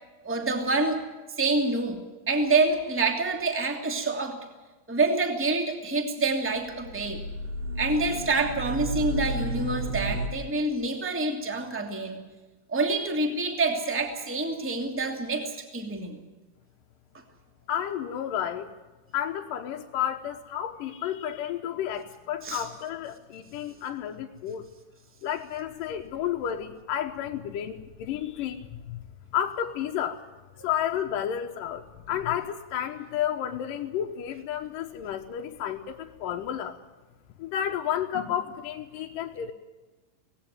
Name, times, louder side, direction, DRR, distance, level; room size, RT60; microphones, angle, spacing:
voice 1, 0.2-1.0 1.4-2.0 2.3-4.4 4.9-7.2 7.8-12.2 12.7-16.2 22.4-22.6, right 3 dB, 5° right, 3 dB, 1.7 m, -27 dB
sound 1, 6.7-10.3, right 1 dB, 65° right, 3.7 m, -32 dB
voice 2, 17.7-18.7 19.1-24.7 25.2-29.0 29.3-30.2 30.6-36.8 37.4-39.5, left 10 dB, 70° left, 2 dB, 2.3 m, -31 dB
19.0 x 16.5 x 9.3 m, 1.2 s
omnidirectional pair, 4.6 m